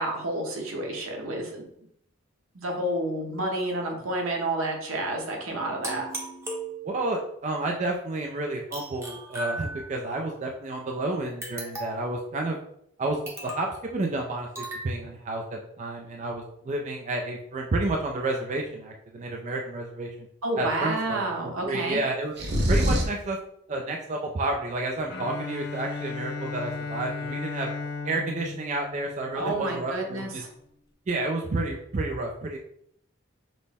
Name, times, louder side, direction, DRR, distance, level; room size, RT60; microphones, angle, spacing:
voice 1, 0.0-1.6 2.5-6.1 20.4-22.0 29.3-30.5, right 1 dB, 80° right, 1 dB, 1.0 m, -30 dB
sound 1, 5.8-7.2 8.7-10.1 11.4-12.2 13.3-13.8 14.6-14.9, right 1 dB, 15° right, 0.7 m, -37 dB
voice 2, 6.8-12.6 13.0-20.3 20.6-21.2 21.6-22.3 22.7-23.4 23.7-27.7 28.0-30.4 31.1-32.6, right 2 dB, 35° right, 1 dB, 0.4 m, -30 dB
sound 2, 22.4-23.2, equal, 55° right, 0.8 m, -23 dB
Bowed string instrument, 25.1-29.9, left 4 dB, 50° left, 0.6 m, -35 dB
6.0 x 2.1 x 3.4 m, 0.73 s
head